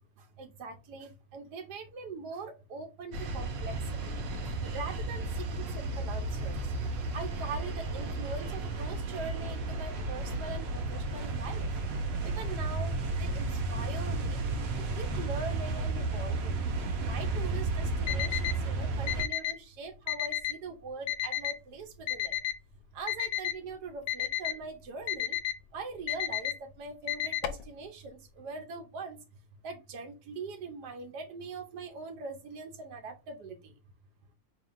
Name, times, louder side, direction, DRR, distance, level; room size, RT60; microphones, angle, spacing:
voice 1, 0.2-6.7 7.1-11.7 12.2-14.4 14.8-16.6 17.0-22.4 22.9-25.4 25.7-29.2 29.6-33.7, right 3 dB, 90° right, 4 dB, 1.3 m, -42 dB
sound 1, 3.1-19.3, right 2 dB, 65° right, 0.6 m, -33 dB
Alarm, 18.1-18.5 19.1-19.5 20.1-20.5 21.1-21.5 22.1-22.5 23.1-23.5 24.1-24.5 25.1-25.5 26.1-26.5 27.1-27.6, left 12 dB, 75° left, 1.1 m, -31 dB
4.4 x 3.2 x 2.4 m, 0.27 s
omnidirectional pair, 1.7 m